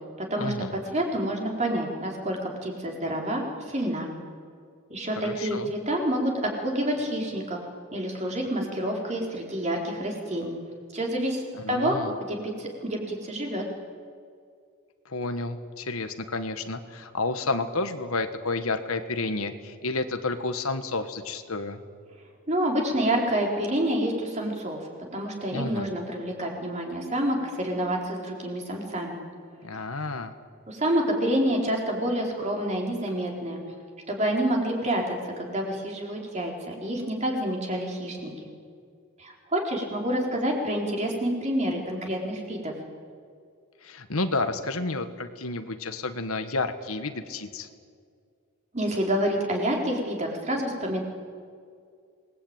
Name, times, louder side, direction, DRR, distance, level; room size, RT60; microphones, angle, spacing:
voice 1, 0.4-0.7 5.2-5.7 11.5-12.2 15.0-21.8 25.5-25.9 29.6-30.3 43.8-47.7, left 3 dB, 75° left, 8 dB, 1.6 m, -30 dB
voice 2, 0.9-4.1 4.9-7.6 7.9-10.6 10.9-11.4 11.7-13.6 22.5-24.8 25.1-29.2 29.7-29.8 30.7-33.6 34.1-38.5 39.2-42.7 48.7-51.0, right 1 dB, 30° right, 0 dB, 4.2 m, -28 dB
27.0 x 20.0 x 8.9 m, 2.2 s
head